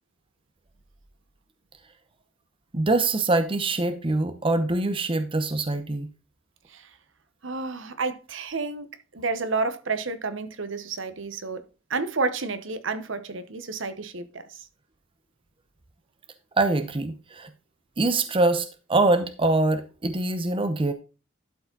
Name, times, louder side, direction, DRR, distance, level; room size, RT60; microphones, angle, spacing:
voice 1, 2.7-6.1 16.6-17.5 18.0-20.9, right 2 dB, 25° right, 0.7 m, -24 dB
voice 2, 7.4-11.6 11.9-14.6, right 4 dB, 65° right, 1.0 m, -30 dB
12.0 x 5.0 x 3.9 m
head